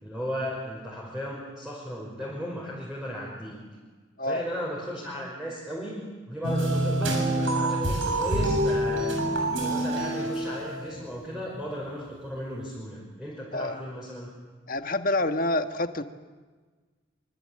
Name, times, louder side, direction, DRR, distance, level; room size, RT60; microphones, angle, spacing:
voice 1, 0.0-3.6 4.2-9.2 9.6-14.3, equal, 5° right, -4 dB, 5.5 m, -35 dB
sound 1, 6.4-11.0, right 1 dB, 85° right, 7.3 m, -26 dB
voice 2, 14.7-16.0, left 2 dB, 45° left, 8 dB, 1.5 m, -27 dB
25.5 x 25.0 x 8.9 m, 1.4 s
head